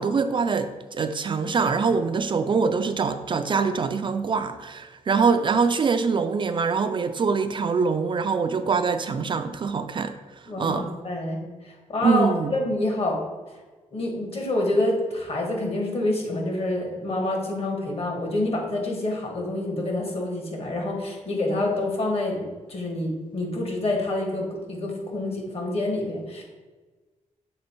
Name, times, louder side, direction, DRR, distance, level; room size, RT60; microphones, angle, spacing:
voice 1, 0.0-10.1 10.6-10.9 12.0-12.5, right 5 dB, 40° right, 9 dB, 0.3 m, -24 dB
voice 2, 10.5-13.2 13.9-26.4, left 2 dB, 50° left, 1 dB, 1.4 m, -27 dB
6.4 x 3.3 x 4.4 m, 1.3 s
cardioid pair, 110°, 13 cm